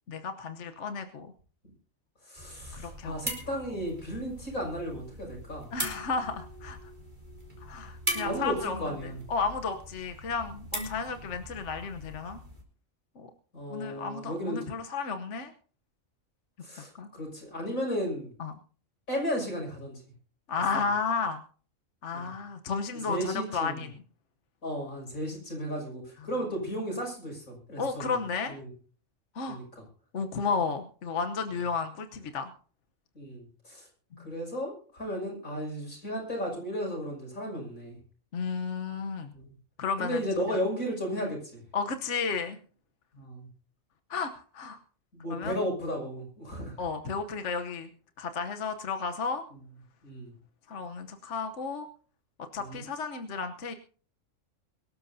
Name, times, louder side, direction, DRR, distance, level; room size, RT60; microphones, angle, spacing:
voice 1, 0.1-1.3 2.7-3.1 5.7-6.8 7.6-8.8 9.0-12.4 13.2-13.3 13.7-15.5 16.8-17.1 18.4-18.5 20.5-21.4 22.0-23.9 27.8-28.6 29.3-29.6 30.1-32.5 34.2-34.3 38.3-39.3 39.8-40.6 41.7-42.6 44.1-44.8 45.3-45.6 46.8-47.9 48.2-49.4 50.7-51.9 52.5-53.7, left 5 dB, 60° left, 6 dB, 1.3 m, -33 dB
voice 2, 2.2-5.7 8.2-9.2 13.5-14.8 16.6-18.3 19.1-20.0 20.7-20.8 22.1-22.3 22.9-23.8 24.6-28.1 28.5-28.7 29.5-29.6 33.1-33.9 34.2-38.0 39.3-39.6 40.0-41.6 43.1-43.5 45.1-46.7 49.5-49.6 50.0-50.3 52.6-52.8, equal, 85° left, 0 dB, 6.6 m, -34 dB
sound 1, 2.4-12.6, right 1 dB, 35° right, 3.5 m, -40 dB
23.0 x 13.0 x 2.7 m, 0.41 s
omnidirectional pair, 1.4 m